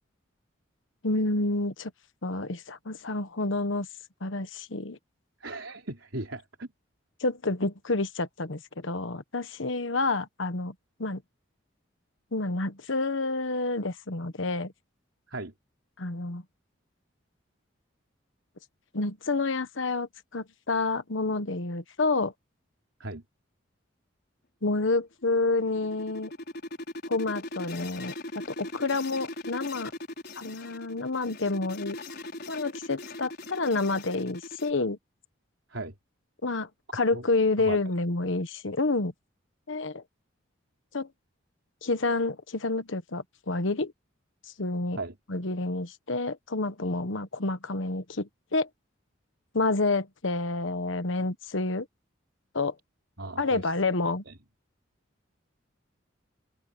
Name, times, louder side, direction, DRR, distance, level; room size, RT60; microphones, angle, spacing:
voice 1, 1.0-1.9 2.2-3.9 4.2-5.0 7.2-10.7 11.0-11.2 12.3-14.7 16.0-16.4 18.9-22.3 24.6-26.3 27.1-29.9 30.4-32.0 32.5-35.0 36.4-39.1 39.7-40.0 40.9-41.1 41.8-43.9 44.6-45.0 45.3-48.7 49.5-51.9 52.5-52.7 53.4-54.2, left 3 dB, 75° left, 1.2 m, -29 dB
voice 2, 5.4-6.7 15.3-15.5 23.0-23.2 35.7-35.9 37.1-37.2 37.6-37.8 45.0-45.2 53.2-53.7 54.3-54.4, right 2 dB, 75° right, 4.0 m, -37 dB
sound 1, 25.3-34.7, left 2 dB, 55° left, 5.8 m, -40 dB
open air
head